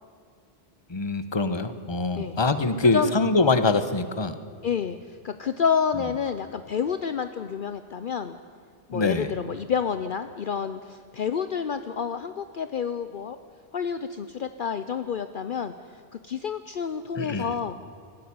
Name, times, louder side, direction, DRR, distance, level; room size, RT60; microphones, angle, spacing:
voice 1, 0.9-4.3 8.9-9.3 17.2-17.5, left 3 dB, 25° left, 12 dB, 1.0 m, -24 dB
voice 2, 2.8-3.1 4.6-8.4 8.9-13.4 13.7-15.7 16.2-17.7, left 7 dB, 55° left, 10 dB, 0.8 m, -29 dB
19.5 x 14.5 x 9.5 m, 2.3 s
omnidirectional pair, 1.1 m